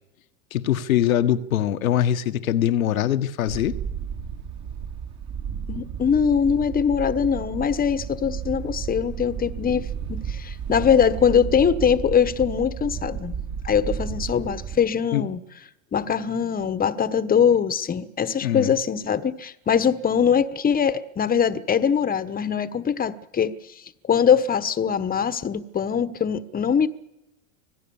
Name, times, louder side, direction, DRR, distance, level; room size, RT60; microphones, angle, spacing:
voice 1, 0.5-3.7 15.1-15.2 18.4-18.7, left 11 dB, 85° left, 9 dB, 1.4 m, -22 dB
Wind, 3.5-14.8, right 7 dB, 45° right, 3.5 m, -33 dB
voice 2, 5.7-13.3 13.6-15.4 15.9-23.5 24.1-26.9, left 7 dB, 20° left, 14 dB, 1.2 m, -22 dB
25.5 x 17.5 x 7.2 m, 0.92 s
hypercardioid pair, 105°, 40 cm